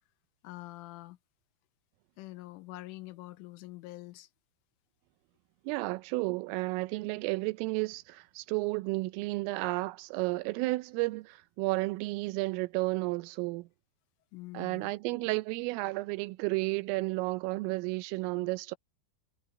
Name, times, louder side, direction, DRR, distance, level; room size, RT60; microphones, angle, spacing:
voice 1, 0.4-1.2 2.2-4.3 14.3-14.9, left 18 dB, 85° left, 3.3 m, -45 dB
voice 2, 5.7-13.7 14.6-18.8, right 22 dB, 90° right, 3.4 m, -32 dB
omnidirectional pair, 5.7 m